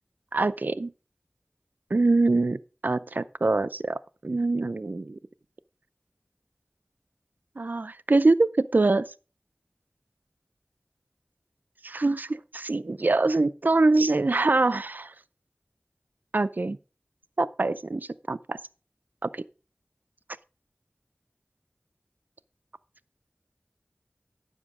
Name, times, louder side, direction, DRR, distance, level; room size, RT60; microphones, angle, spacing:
voice 1, 0.3-0.9 1.9-5.2 7.6-9.0 11.8-15.1 16.3-16.8 17.4-18.6 19.3-19.4, right 3 dB, 60° right, 0.4 m, -24 dB
9.6 x 7.3 x 4.9 m
wide cardioid pair, 45°, 4 cm